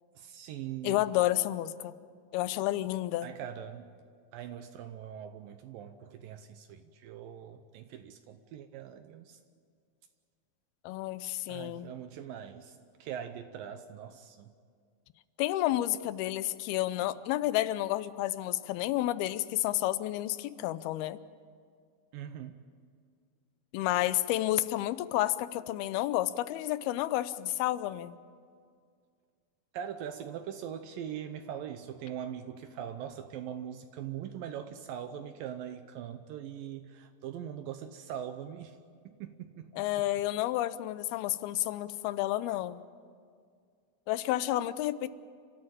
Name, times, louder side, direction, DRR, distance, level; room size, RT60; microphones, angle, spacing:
voice 1, 0.1-1.0 3.2-3.9 4.3-9.4 11.5-14.5 22.1-22.6 29.7-38.8 39.1-40.0, right 9 dB, 75° right, 8 dB, 2.4 m, -42 dB
voice 2, 0.8-1.9 2.3-3.3 10.8-11.9 15.4-21.2 23.7-28.2 39.8-42.8 44.1-45.1, left 15 dB, 90° left, 15 dB, 2.7 m, -30 dB
29.5 x 13.5 x 8.9 m, 2.2 s
omnidirectional pair, 4.3 m